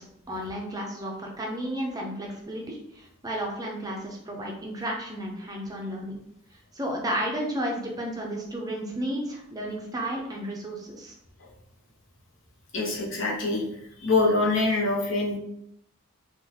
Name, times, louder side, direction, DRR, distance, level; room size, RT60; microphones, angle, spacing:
voice 1, 0.0-6.2 6.7-11.2, equal, 20° right, -1 dB, 0.5 m, -33 dB
voice 2, 12.7-13.6 14.0-15.4, left 3 dB, 65° left, -3 dB, 1.0 m, -24 dB
3.8 x 2.5 x 2.8 m, 0.75 s
head